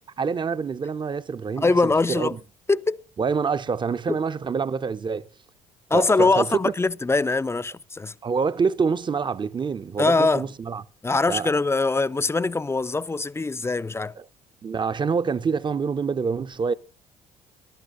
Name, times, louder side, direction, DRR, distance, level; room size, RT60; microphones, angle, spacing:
voice 1, 0.2-1.7 2.1-2.4 3.2-5.3 5.9-6.6 8.2-10.8 11.3-11.5 14.6-16.7, right 5 dB, 25° right, 0.7 m, -26 dB
voice 2, 1.6-2.4 2.7-3.0 4.1-4.2 5.9-8.1 10.0-10.4 11.0-14.1, left 3 dB, 15° left, 0.5 m, -22 dB
20.5 x 11.5 x 2.6 m
hypercardioid pair, 55°, 17 cm